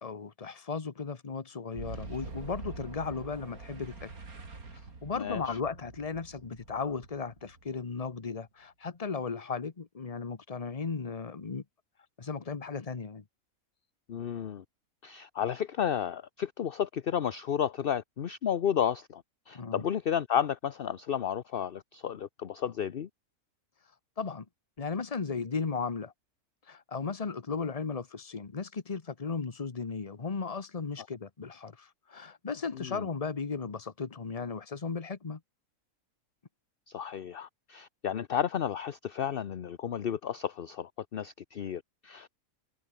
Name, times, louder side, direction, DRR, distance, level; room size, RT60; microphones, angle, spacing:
voice 1, 0.0-4.1 4.7-11.6 12.2-13.2 19.5-19.9 24.2-24.5 24.8-26.1 26.7-35.4, left 5 dB, 30° left, 1.2 m, -36 dB
Boom, 1.7-8.3, right 3 dB, 85° right, 3.8 m, -45 dB
voice 2, 5.2-5.6 14.1-14.6 15.0-23.1 32.7-33.1 36.9-42.3, left 8 dB, 50° left, 0.9 m, -32 dB
omnidirectional pair, 1.5 m